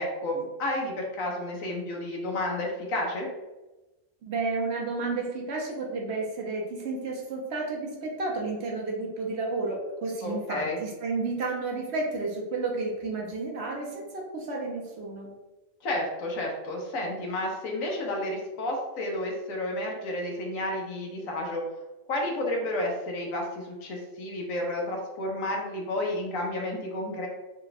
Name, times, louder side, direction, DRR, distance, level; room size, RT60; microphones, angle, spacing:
voice 1, 0.0-3.3 10.2-10.8 15.8-21.6 22.1-27.3, left 1 dB, 85° left, 0 dB, 1.3 m, -31 dB
voice 2, 4.2-15.3, right 3 dB, 60° right, -1 dB, 0.9 m, -31 dB
3.5 x 2.2 x 3.9 m, 1.1 s
omnidirectional pair, 1.4 m